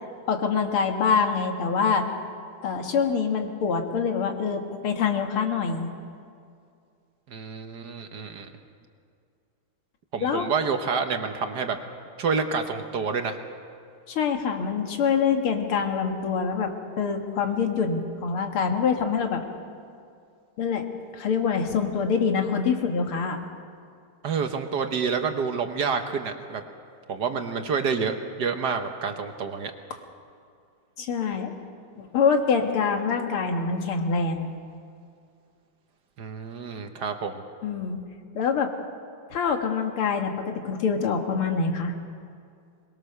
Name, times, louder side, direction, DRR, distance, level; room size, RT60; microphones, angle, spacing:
voice 1, 0.3-2.1 2.6-5.9 10.2-10.5 14.1-19.4 20.6-20.9 21.1-23.4 31.0-31.5 32.0-34.5 37.6-38.0 38.3-38.7 39.3-41.9, left 5 dB, 90° left, 4 dB, 2.5 m, -25 dB
voice 2, 7.3-8.5 10.1-11.8 12.2-13.4 24.2-26.6 27.1-29.7 36.2-37.4, right 5 dB, 55° right, 6 dB, 1.6 m, -28 dB
22.5 x 21.5 x 6.7 m, 2.3 s
omnidirectional pair, 2.3 m